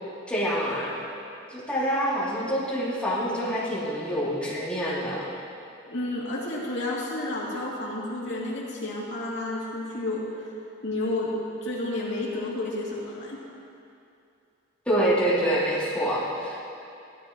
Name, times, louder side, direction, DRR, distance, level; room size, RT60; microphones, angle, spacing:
voice 1, 0.3-1.0 1.5-5.3 14.9-16.6, equal, 5° left, -10 dB, 3.0 m, -26 dB
voice 2, 5.8-10.3 10.8-11.3 11.6-13.4, left 2 dB, 65° left, -6 dB, 2.8 m, -31 dB
16.0 x 13.0 x 3.1 m, 2.6 s
head